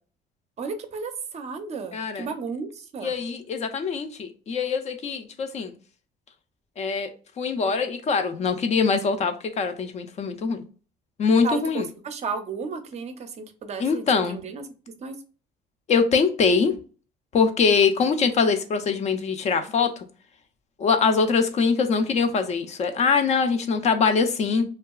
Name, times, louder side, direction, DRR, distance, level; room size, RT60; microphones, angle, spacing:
voice 1, 0.6-3.1 11.4-14.6 15.0-15.1, right 5 dB, 40° right, 7 dB, 0.5 m, -33 dB
voice 2, 1.9-2.3 3.0-5.7 6.8-10.6 11.2-11.9 13.8-14.4 15.9-16.7 17.3-20.1 20.8-24.6, left 5 dB, 40° left, 8 dB, 0.4 m, -23 dB
2.7 x 2.3 x 2.3 m, 0.37 s
cardioid pair, 110°, 17 cm